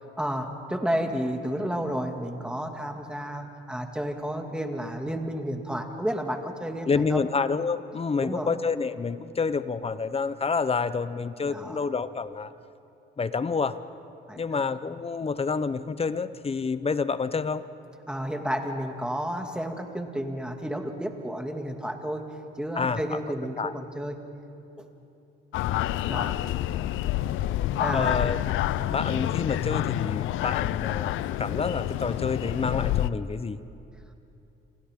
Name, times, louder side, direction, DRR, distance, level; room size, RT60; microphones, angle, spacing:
voice 1, 0.2-7.3 8.2-8.5 11.4-11.8 14.3-14.7 18.1-22.2 22.6-24.2 24.8-24.9 26.1-26.4 27.8-28.2, equal, 5° right, 3 dB, 2.2 m, -31 dB
voice 2, 6.9-12.5 13.2-13.8 14.3-17.7 22.8-23.2 23.6-23.7 27.9-28.4 28.8-31.1 31.4-33.6, left 5 dB, 30° left, 13 dB, 0.8 m, -28 dB
sound 1, 25.5-33.1, left 13 dB, 85° left, 0.5 m, -28 dB
29.5 x 27.0 x 3.7 m, 2.8 s
cardioid pair, 90°, 20 cm